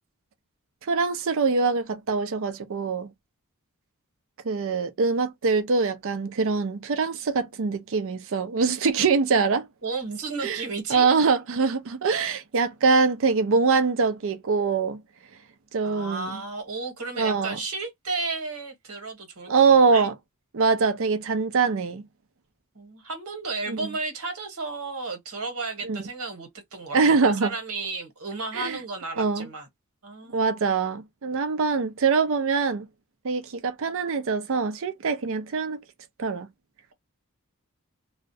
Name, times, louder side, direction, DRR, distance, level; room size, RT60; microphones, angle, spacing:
voice 1, 0.8-3.1 4.4-9.7 10.4-10.6 10.9-15.0 15.7-16.4 17.2-17.6 19.5-20.1 20.5-22.0 23.7-23.8 25.8-26.0 26.9-27.5 28.5-28.8 29.2-29.5 30.3-32.9 33.2-35.8 36.2-36.5, right 4 dB, 65° right, 0.5 m, -23 dB
voice 2, 9.8-11.1 15.8-19.5 19.9-20.1 22.7-27.0 27.2-29.7 30.0-30.5, right 3 dB, 85° right, 1.1 m, -33 dB
2.3 x 2.1 x 2.6 m
head